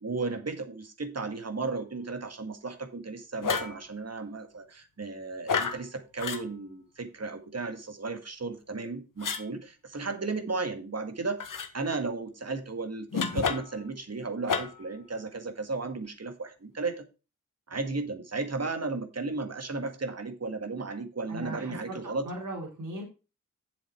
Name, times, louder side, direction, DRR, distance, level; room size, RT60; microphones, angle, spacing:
voice 1, 0.0-11.4 11.7-17.0 17.7-22.3, right 3 dB, 50° right, 2.0 m, -34 dB
sound 1, 3.4-3.8 5.5-5.8 6.2-6.4 9.2-9.4 11.4-11.7 13.1-13.8 14.5-14.9, left 5 dB, 80° left, 1.2 m, -30 dB
voice 2, 21.3-22.0 22.2-23.0, right 1 dB, 75° right, 3.8 m, -38 dB
7.8 x 7.2 x 4.6 m
cardioid pair, 45°, 32 cm